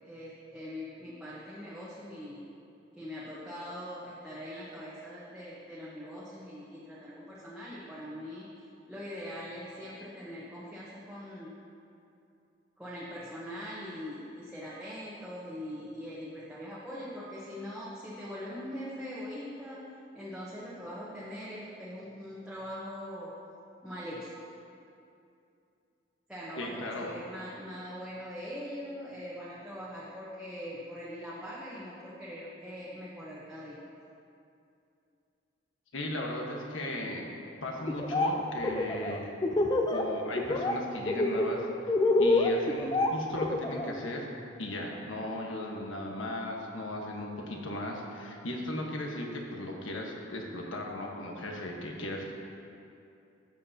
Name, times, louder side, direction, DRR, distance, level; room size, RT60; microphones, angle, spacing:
voice 1, 0.0-2.5 2.9-11.5 12.8-19.8 20.1-23.3 23.8-24.3 26.3-33.8, equal, 5° right, -9 dB, 1.0 m, -42 dB
voice 2, 26.6-27.1 35.9-37.3 37.6-39.3 39.9-44.3 44.6-52.3, left 1 dB, 90° left, 0 dB, 1.3 m, -36 dB
Laughter, 37.9-38.3 38.6-40.0 40.4-40.7 41.1-43.9, left 2 dB, 20° left, 0.5 m, -26 dB
13.5 x 7.6 x 2.8 m, 2.6 s
head